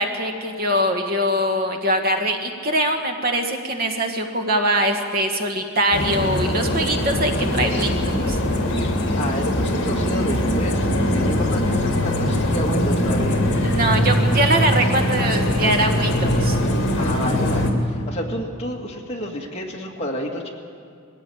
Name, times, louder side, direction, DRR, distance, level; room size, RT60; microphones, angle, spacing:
voice 1, 0.0-8.4 13.6-16.6, right 1 dB, 45° right, 4 dB, 1.6 m, -22 dB
sound 1, 5.9-17.7, left 1 dB, 55° left, 2.6 m, -21 dB
voice 2, 9.2-13.4 14.3-14.4 17.0-20.5, equal, 30° left, 0 dB, 2.1 m, -30 dB
21.0 x 15.5 x 8.7 m, 2.3 s
head